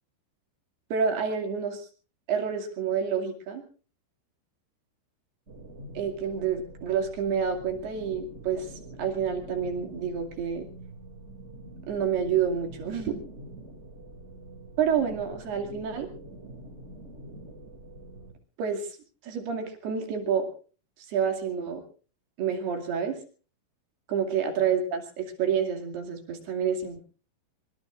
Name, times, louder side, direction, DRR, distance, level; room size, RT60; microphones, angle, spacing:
voice 1, 0.9-1.9 2.3-3.6 6.0-8.7 9.0-10.7 11.9-13.2 14.8-16.1 18.6-19.0 19.2-20.5 21.1-21.8 22.4-23.2 24.1-27.0, right 7 dB, 65° right, 4 dB, 4.3 m, -28 dB
sound 1, 5.5-18.3, right 1 dB, 20° right, 1.9 m, -45 dB
24.5 x 23.0 x 2.5 m, 0.39 s
omnidirectional pair, 5.2 m